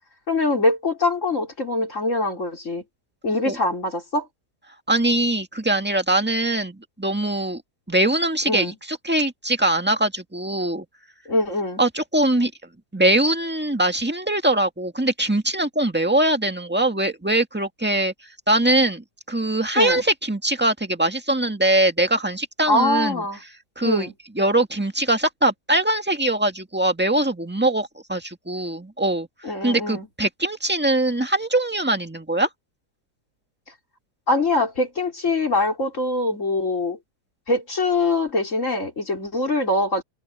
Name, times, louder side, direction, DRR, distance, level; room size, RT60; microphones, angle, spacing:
voice 1, 0.3-2.8 3.2-4.3 8.5-8.8 11.3-11.8 19.8-20.0 22.7-23.4 23.8-24.1 29.4-30.1 34.3-37.0 37.5-40.0, left 2 dB, 45° left, 4.4 m, -23 dB
voice 2, 4.9-7.6 7.9-10.8 11.8-12.5 12.9-18.1 18.5-23.2 23.8-24.1 24.3-29.3 29.6-32.5, right 1 dB, 5° right, 1.7 m, -22 dB
omnidirectional pair, 1.8 m